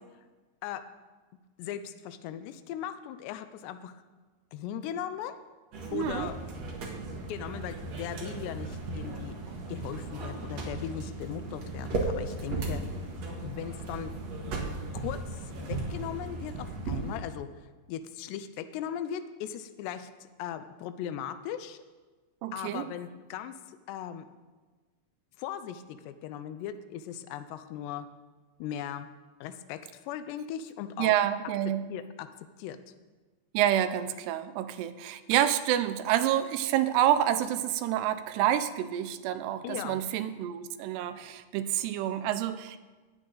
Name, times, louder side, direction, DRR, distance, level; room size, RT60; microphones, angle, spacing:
voice 1, 1.6-4.0 4.5-5.4 5.9-6.4 7.1-9.4 9.7-12.9 13.4-14.2 14.9-17.5 17.9-21.8 22.5-24.3 25.4-28.1 28.6-29.1 29.4-31.2 31.9-32.3 32.6-32.8 39.6-40.0, left 10 dB, 85° left, 11 dB, 2.8 m, -38 dB
sound 1, 5.7-17.2, right 2 dB, 50° right, 2.3 m, -36 dB
voice 2, 5.9-6.3 22.4-22.9 31.0-31.9 33.5-42.8, right 11 dB, 80° right, 10 dB, 2.7 m, -28 dB
19.0 x 8.8 x 3.9 m, 1.3 s
omnidirectional pair, 4.8 m